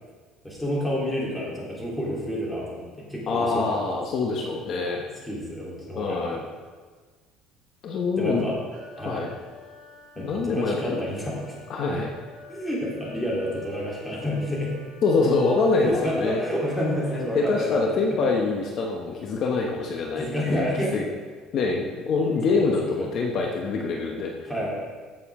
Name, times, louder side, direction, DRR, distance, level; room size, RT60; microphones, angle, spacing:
voice 1, 0.4-3.7 5.3-6.4 8.2-8.6 9.0-9.2 10.2-11.6 12.5-14.7 15.8-17.9 20.2-21.0 22.5-23.1 24.5-24.7, equal, 5° left, -5 dB, 3.5 m, -29 dB
voice 2, 3.3-5.0 5.9-6.4 7.8-8.4 9.0-9.3 10.2-11.0 11.7-12.1 15.0-16.4 17.3-21.1 21.5-24.5, left 3 dB, 50° left, 0 dB, 1.1 m, -25 dB
sound 1, 8.7-18.6, left 2 dB, 50° right, 2.9 m, -49 dB
15.0 x 6.9 x 3.8 m, 1.4 s
cardioid pair, 125°, 0 cm